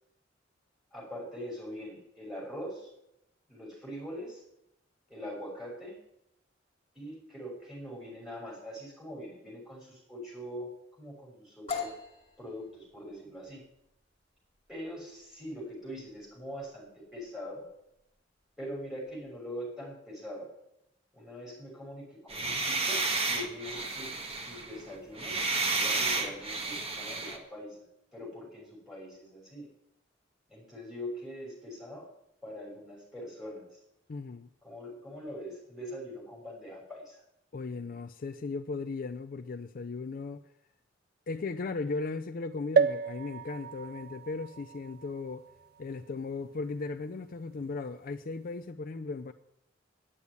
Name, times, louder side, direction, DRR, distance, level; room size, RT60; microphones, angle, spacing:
voice 1, 0.9-2.9 3.5-4.4 5.1-6.0 6.9-10.7 11.0-11.9 12.4-13.7 14.7-17.7 18.6-20.5 21.1-25.4 25.7-27.8 28.1-29.7 30.5-32.1 32.4-33.8 34.6-37.2, equal, ahead, 6.0 m, -42 dB
sound 1, 11.7-19.3, left 5 dB, 35° left, 2.3 m, -44 dB
sound 2, 22.3-27.4, right 3 dB, 30° right, 1.6 m, -31 dB
voice 2, 34.1-34.5 37.5-40.4 41.3-45.4 45.8-49.3, left 3 dB, 50° left, 0.5 m, -37 dB
sound 3, 42.8-46.4 47.0-47.1 47.3-47.4, right 6 dB, 55° right, 0.4 m, -32 dB
10.0 x 8.5 x 9.5 m
head